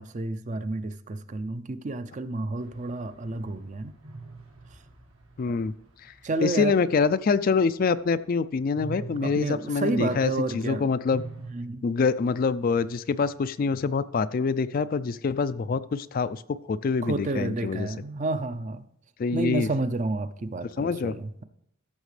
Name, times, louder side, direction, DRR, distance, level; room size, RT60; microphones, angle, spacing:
voice 1, 0.0-3.9 6.2-6.8 9.2-10.9 11.5-11.9 17.0-18.9 19.3-21.4, right 2 dB, 35° right, 0.5 m, -30 dB
sound 1, 2.6-8.2 8.6-11.5, right 3 dB, 85° right, 2.0 m, -45 dB
voice 2, 5.4-5.7 6.4-11.2 11.8-16.4 16.7-17.9 19.2-19.7 20.8-21.1, left 5 dB, 45° left, 0.3 m, -25 dB
14.0 x 6.4 x 3.3 m
head